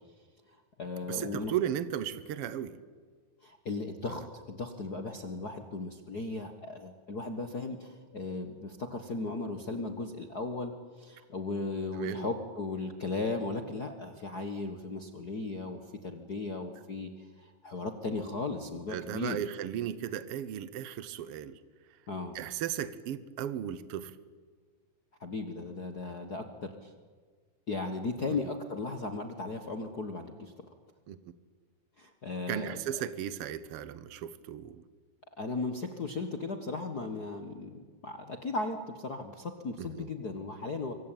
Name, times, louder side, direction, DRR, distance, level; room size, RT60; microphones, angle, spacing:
voice 1, 0.5-1.5 3.4-19.4 22.1-22.4 25.2-26.9 27.7-30.5 32.0-33.1 35.4-40.9, left 3 dB, 60° left, 6 dB, 1.0 m, -36 dB
voice 2, 1.0-2.8 4.1-4.2 11.9-12.3 18.9-21.6 22.3-24.1 28.3-28.4 31.1-31.3 32.5-34.8 39.8-40.1, right 10 dB, 85° right, 15 dB, 1.3 m, -36 dB
25.5 x 24.5 x 9.1 m, 1.5 s
omnidirectional pair, 4.2 m